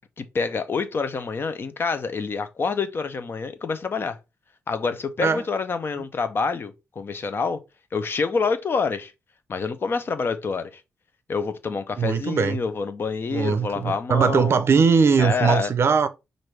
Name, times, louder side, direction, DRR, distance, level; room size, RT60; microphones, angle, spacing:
voice 1, 0.2-4.2 4.7-7.6 7.9-9.1 9.5-10.8 11.3-14.6 15.2-15.7, left 5 dB, 45° left, 0.6 m, -27 dB
voice 2, 12.0-12.6 13.3-16.1, right 6 dB, 55° right, 0.5 m, -20 dB
5.9 x 2.6 x 3.3 m
cardioid pair, 110°, 5 cm